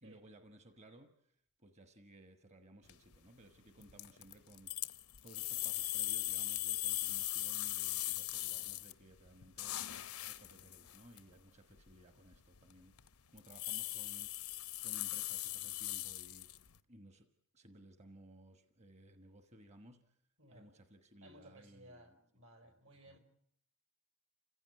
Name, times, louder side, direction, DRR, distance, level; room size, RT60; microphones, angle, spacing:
voice 1, 0.0-4.9 5.2-9.9 10.2-12.9 13.3-14.5 14.8-16.6 16.9-17.3 17.5-20.2 20.5-22.2 22.6-22.7 23.0-23.2, right 1 dB, 30° right, 8 dB, 1.3 m, -59 dB
sound 1, 2.9-3.2 3.8-8.9 9.3-11.2 11.8-11.9 12.3-12.7 13.0-13.1 13.4-16.8, left 16 dB, 85° left, 0.9 m, -39 dB
voice 2, 21.2-23.2, right 1 dB, 70° right, 8 dB, 4.5 m, -59 dB
29.0 x 16.0 x 9.4 m, 0.71 s
head